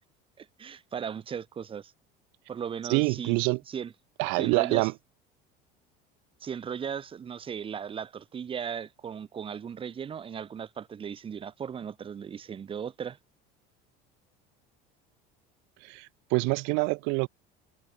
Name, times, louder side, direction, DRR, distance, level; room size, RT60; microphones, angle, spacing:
voice 1, 0.4-1.9 2.5-3.9 4.4-4.9 6.4-13.2, right 7 dB, 25° right, 2.7 m, -37 dB
voice 2, 2.9-3.6 4.2-4.9 15.8-17.3, right 32 dB, 75° right, 2.1 m, -26 dB
cardioid pair, 140°, 20 cm